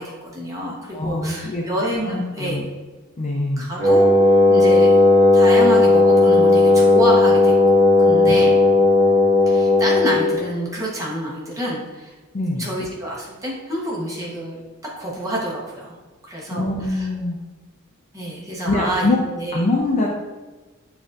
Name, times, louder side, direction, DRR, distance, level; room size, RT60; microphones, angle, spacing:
voice 1, 0.0-2.6 3.6-4.1 4.5-4.9 5.3-7.5 8.0-8.6 9.5-12.1 12.6-14.6 15.0-15.9 16.2-17.1 18.1-19.6, right 1 dB, 15° right, -5 dB, 1.0 m, -27 dB
voice 2, 0.9-1.6 2.0-2.6 3.2-3.7 8.2-8.4 12.3-12.7 16.5-17.4 18.6-19.2 19.5-20.1, left 2 dB, 35° left, -2 dB, 0.5 m, -23 dB
Wind instrument woodwind instrument, 3.8-10.4, left 2 dB, 15° left, 1.1 m, -14 dB
7.0 x 2.6 x 2.5 m, 1.2 s
head